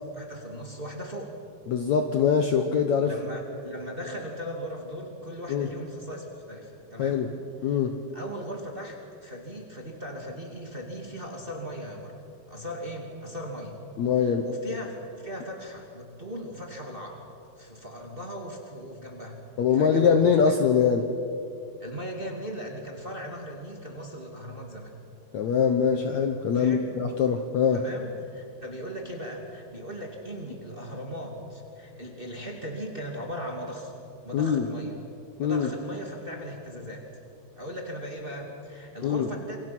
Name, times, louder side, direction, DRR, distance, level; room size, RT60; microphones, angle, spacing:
voice 1, 0.1-1.3 3.0-7.3 7.7-7.8 8.1-9.0 9.2-12.1 12.5-13.8 14.2-17.2 17.6-19.4 19.7-20.5 21.8-24.9 26.5-26.9 27.7-33.9 34.2-35.0 35.4-37.0 37.6-39.6, equal, 15° right, 1 dB, 2.1 m, -38 dB
voice 2, 1.7-3.1 5.5-5.7 7.0-7.3 7.6-8.0 14.0-14.5 19.6-21.1 25.3-27.8 34.3-34.7 35.4-35.7 39.0-39.3, left 7 dB, 65° left, 6 dB, 1.9 m, -23 dB
28.0 x 24.5 x 6.0 m, 2.6 s
omnidirectional pair, 4.3 m